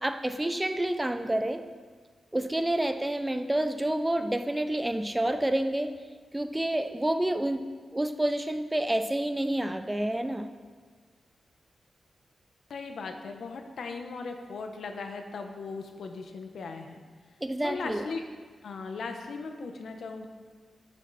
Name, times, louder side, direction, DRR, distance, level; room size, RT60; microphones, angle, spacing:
voice 1, 0.0-1.6 2.3-5.9 6.3-7.6 7.9-10.5 17.4-18.1, right 1 dB, 15° right, 8 dB, 0.6 m, -28 dB
voice 2, 12.7-17.0 17.6-18.2 18.6-20.3, left 4 dB, 80° left, 5 dB, 1.0 m, -38 dB
13.0 x 7.2 x 4.2 m, 1.5 s
wide cardioid pair, 95°, 0 cm